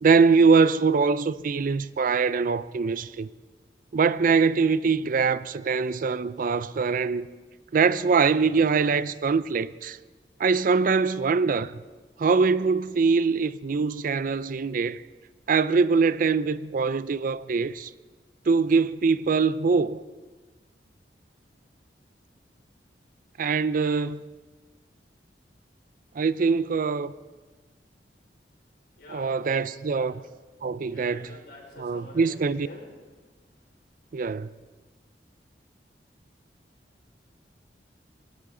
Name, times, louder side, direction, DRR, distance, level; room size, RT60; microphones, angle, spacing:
voice 1, 0.0-3.3 3.9-7.3 7.7-10.0 10.4-11.8 12.2-15.0 15.5-17.9 18.5-20.0 23.4-24.2 26.2-27.1 29.1-30.2 30.6-31.4 31.8-32.7 34.1-34.5, right 5 dB, 50° right, 0.4 m, -23 dB
voice 2, 29.0-29.5 29.8-30.2 30.8-32.9, left 1 dB, 65° left, 4.9 m, -47 dB
20.0 x 16.5 x 3.8 m
head